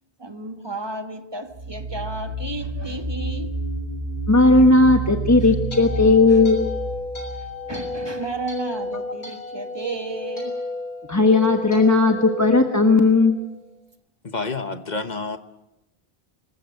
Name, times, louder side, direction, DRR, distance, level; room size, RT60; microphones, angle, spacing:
voice 1, 0.2-3.6 5.4-5.5 6.3-6.4 7.7-10.6, right 2 dB, 25° right, 1.7 m, -33 dB
sound 1, 1.5-8.1, right 2 dB, 55° right, 3.5 m, -30 dB
voice 2, 4.3-6.7 11.1-13.3, left 3 dB, 15° left, 1.2 m, -16 dB
sound 2, 5.2-13.5, left 3 dB, 90° left, 7.2 m, -33 dB
voice 3, 14.2-15.4, left 3 dB, 45° left, 1.2 m, -28 dB
25.5 x 15.0 x 9.1 m
omnidirectional pair, 1.1 m